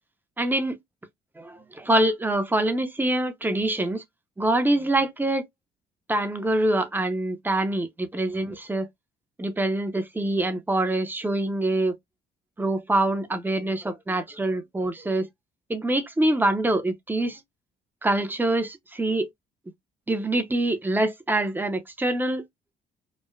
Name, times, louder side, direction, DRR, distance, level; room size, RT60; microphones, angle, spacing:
voice 1, 0.4-0.8 1.4-4.0 4.4-5.5 6.1-8.9 9.4-12.0 12.6-15.3 15.7-17.4 18.0-19.3 20.1-22.4, right 1 dB, 10° right, 0.5 m, -25 dB
3.1 x 2.0 x 2.2 m
cardioid pair, 115°, 17 cm